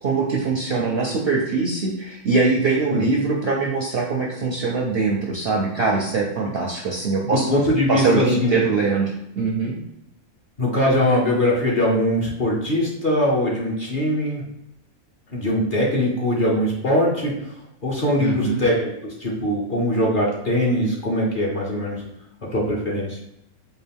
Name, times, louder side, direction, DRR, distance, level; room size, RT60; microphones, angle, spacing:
voice 1, 0.0-7.5 7.9-9.1 9.4-9.7 18.2-18.6, right 4 dB, 60° right, -1 dB, 0.6 m, -22 dB
voice 2, 7.3-8.5 10.6-14.4 15.3-17.3 17.8-22.0 22.5-23.2, left 1 dB, 45° left, -3 dB, 0.8 m, -21 dB
4.5 x 2.4 x 3.4 m, 0.82 s
omnidirectional pair, 1.5 m